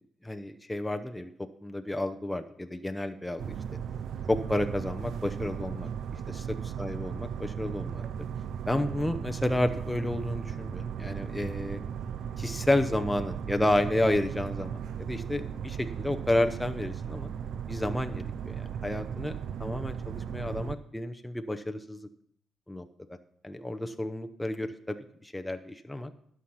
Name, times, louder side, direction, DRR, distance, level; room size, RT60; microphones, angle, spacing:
voice 1, 0.2-1.3 1.6-3.5 4.3-5.9 6.3-6.5 6.8-8.0 8.7-11.8 12.4-17.3 17.7-22.0 22.7-22.9 23.4-25.0 25.2-26.1, left 1 dB, 5° left, 7 dB, 0.7 m, -31 dB
sound 1, 3.4-20.8, right 8 dB, 65° right, 0.6 m, -36 dB
11.5 x 6.1 x 5.7 m, 0.67 s
cardioid pair, 90°, 0 cm